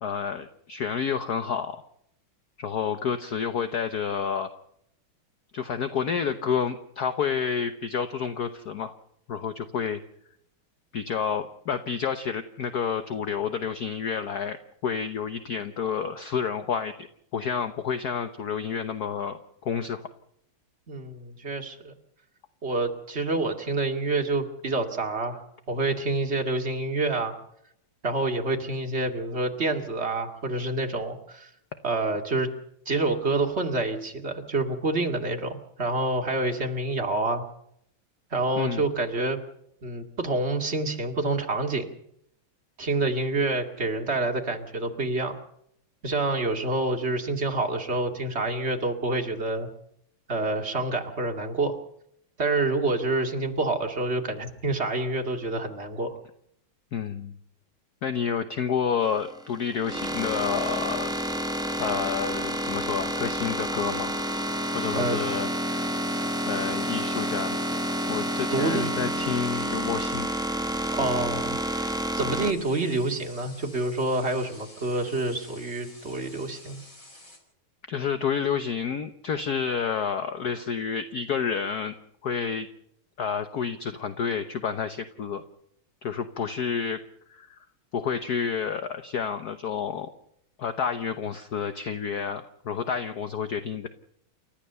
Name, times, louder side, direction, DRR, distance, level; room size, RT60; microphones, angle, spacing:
voice 1, 0.0-1.8 2.6-4.5 5.5-8.9 9.3-10.0 10.9-14.6 14.8-17.1 17.3-20.0 38.6-38.8 56.9-57.3 58.0-61.1 61.8-64.1 64.7-65.8 66.1-67.6 68.1-70.3 77.9-81.9 82.2-82.7 83.2-85.4 86.0-87.0 87.3-87.6 87.9-90.1 90.6-93.9, left 7 dB, 55° left, 9 dB, 1.3 m, -29 dB
voice 2, 20.9-21.9 22.6-25.4 25.7-27.4 28.0-31.5 31.8-32.5 32.9-37.4 38.3-39.4 39.8-41.9 42.8-45.4 46.0-49.7 50.3-51.8 52.4-56.2 64.9-65.3 68.5-69.3 70.9-76.8, right 2 dB, 30° right, 3 dB, 2.5 m, -27 dB
sound 1, 59.0-72.5, equal, 5° right, 0.9 m, -29 dB
sound 2, 66.0-77.4, left 2 dB, 40° left, 5.0 m, -50 dB
29.5 x 13.5 x 6.8 m, 0.73 s
omnidirectional pair, 2.3 m